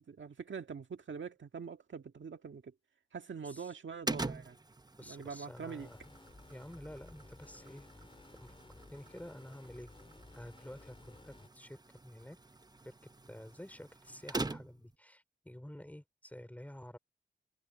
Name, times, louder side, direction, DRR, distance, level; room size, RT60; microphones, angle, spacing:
voice 1, 0.0-2.7 3.1-4.6 5.0-5.9, right 6 dB, 70° right, 1.8 m, -44 dB
sound 1, 4.1-14.9, right 2 dB, 20° right, 0.8 m, -45 dB
voice 2, 5.0-6.1 6.5-7.9 8.4-8.6 8.9-9.9 10.3-12.4 12.8-12.9 13.3-17.0, left 1 dB, 5° left, 5.2 m, -50 dB
sound 2, 5.8-11.5, left 2 dB, 25° left, 5.7 m, -56 dB
wide cardioid pair, 85°, 20 cm